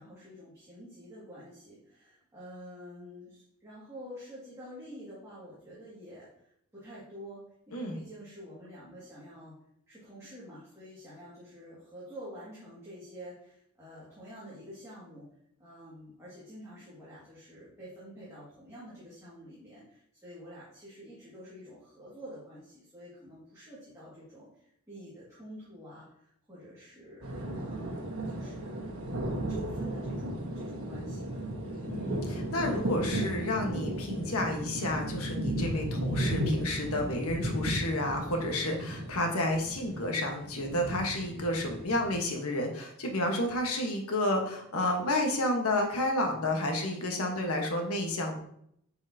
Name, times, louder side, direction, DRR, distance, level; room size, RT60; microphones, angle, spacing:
voice 1, 0.0-9.5 9.9-15.3 15.6-28.9 29.5-31.9, equal, 15° right, -10 dB, 2.1 m, -48 dB
sound 1, 27.2-42.2, right 1 dB, 70° right, 1.4 m, -35 dB
voice 2, 31.9-48.4, left 1 dB, 75° left, 2 dB, 1.3 m, -31 dB
8.4 x 4.8 x 2.8 m, 0.72 s
head